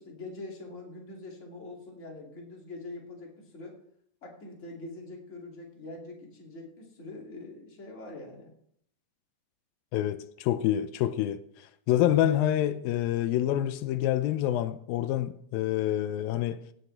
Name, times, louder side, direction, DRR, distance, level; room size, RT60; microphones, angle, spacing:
voice 1, 0.0-3.8 4.2-8.5, left 2 dB, 25° left, 2.2 m, -44 dB
voice 2, 9.9-16.6, left 12 dB, 85° left, 2.4 m, -27 dB
17.5 x 9.7 x 3.3 m
omnidirectional pair, 4.0 m